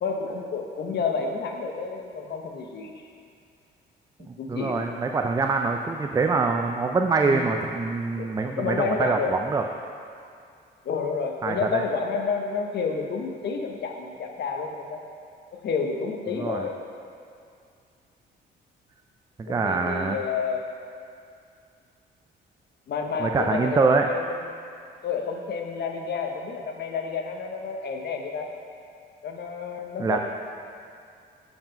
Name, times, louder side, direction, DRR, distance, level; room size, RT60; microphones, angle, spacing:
voice 1, 0.0-2.9 4.4-4.8 7.2-7.4 8.2-9.4 10.8-15.0 15.6-16.8 19.5-20.7 22.9-24.2 25.0-28.5 29.2-30.2, left 5 dB, 60° left, 3 dB, 0.9 m, -30 dB
voice 2, 4.2-9.6 11.4-11.8 16.3-16.7 19.5-20.2 23.2-24.1 30.0-30.2, right 4 dB, 20° right, 4 dB, 0.4 m, -24 dB
7.5 x 4.8 x 5.2 m, 2.4 s
cardioid pair, 90°, 20 cm